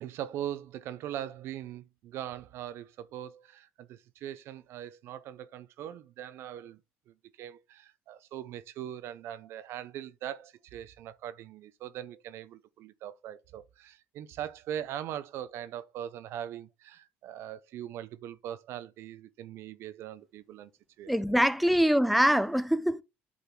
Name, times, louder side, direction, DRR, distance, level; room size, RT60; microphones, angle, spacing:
voice 1, 0.0-6.8 7.1-20.7 21.0-21.1, right 11 dB, 70° right, 0.7 m, -41 dB
voice 2, 21.1-23.0, equal, ahead, 0.6 m, -24 dB
8.4 x 4.0 x 4.5 m
cardioid pair, 105°, 5 cm